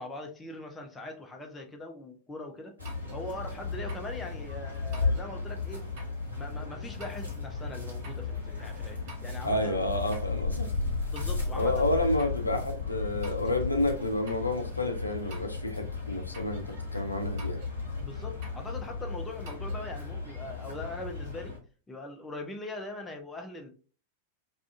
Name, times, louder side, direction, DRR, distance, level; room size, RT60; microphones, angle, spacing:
voice 1, 0.0-2.7 3.1-5.8 6.3-9.9 11.1-11.9 18.0-21.6 21.9-23.7, left 2 dB, 10° left, 0.5 m, -41 dB
sound 1, 2.8-3.2 3.9-4.1 4.9-5.3 6.0-6.2 7.0-7.4 8.0-8.3 9.1-9.5 10.1-10.3 11.1-11.5 12.2-12.5 13.2-13.6 14.3-14.5 15.3-15.7 16.3-16.6 17.4-17.8 18.4-18.7 19.5-19.8, right 3 dB, 45° right, 0.9 m, -49 dB
sound 2, 2.8-21.6, left 4 dB, 90° right, 0.9 m, -35 dB
voice 2, 9.4-10.7 11.5-17.6, left 1 dB, 85° left, 0.4 m, -30 dB
2.4 x 2.3 x 2.4 m
figure-of-eight pair, 90°, 0 cm